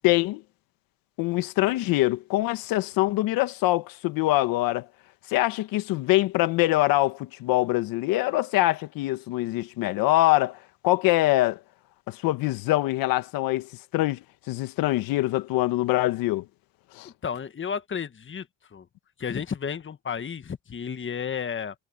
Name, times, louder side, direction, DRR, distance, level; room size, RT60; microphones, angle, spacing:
voice 1, 0.0-0.4 1.2-4.8 5.3-10.6 10.8-11.6 12.1-16.4 16.9-17.1, left 18 dB, 80° left, 1.7 m, -24 dB
voice 2, 17.0-18.5 18.7-18.8 19.2-21.7, left 7 dB, 35° left, 1.5 m, -32 dB
supercardioid pair, 65°, 34 cm